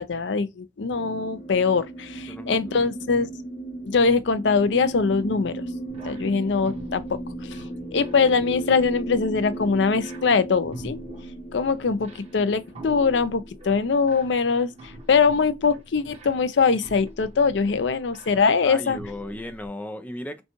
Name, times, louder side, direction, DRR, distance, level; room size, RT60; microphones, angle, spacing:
voice 1, 0.0-3.3 3.8-5.6 6.0-7.6 7.9-11.0 11.5-14.7 15.1-19.0, left 5 dB, 75° left, 0.5 m, -22 dB
sound 1, 0.9-15.5, right 2 dB, 40° left, 0.8 m, -37 dB
voice 2, 2.3-2.9 18.6-20.4, left 1 dB, 10° left, 0.5 m, -36 dB
sound 2, 5.9-19.7, equal, 35° right, 1.3 m, -45 dB
5.1 x 2.3 x 2.9 m
head